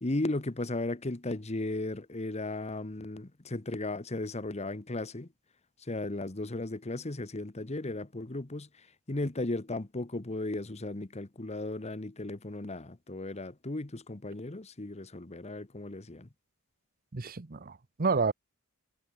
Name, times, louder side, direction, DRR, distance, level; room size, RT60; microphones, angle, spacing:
voice 1, 0.0-5.3 5.9-8.7 9.1-16.3, left 2 dB, 30° left, 1.1 m, -35 dB
voice 2, 17.1-18.3, right 4 dB, 45° right, 0.9 m, -30 dB
head